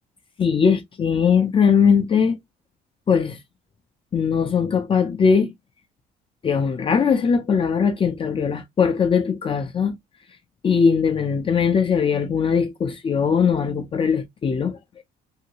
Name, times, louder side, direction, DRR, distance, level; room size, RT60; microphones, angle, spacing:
voice 1, 0.4-2.4 3.1-3.4 4.1-5.5 6.4-10.0 10.6-14.8, left 6 dB, 30° left, 0.6 m, -20 dB
2.8 x 2.7 x 2.9 m
cardioid pair, 110°, 17 cm